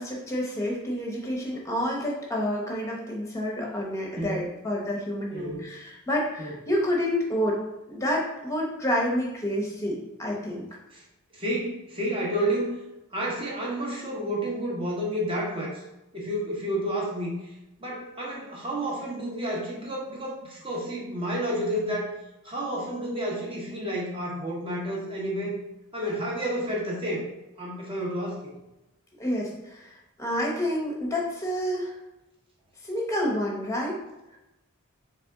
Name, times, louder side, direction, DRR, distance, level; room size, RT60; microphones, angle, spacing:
voice 1, 0.0-7.6 7.9-10.7 29.2-29.9 30.2-32.0 32.8-34.0, equal, 15° left, -2 dB, 0.9 m, -29 dB
voice 2, 4.2-4.5 5.3-5.7 6.4-6.5 10.9-11.0 11.3-12.7 13.1-15.8 16.1-17.5 17.8-22.1 22.4-25.6 25.9-27.2 27.6-28.5, right 1 dB, 25° right, -3 dB, 0.9 m, -30 dB
4.2 x 3.3 x 3.5 m, 0.95 s
head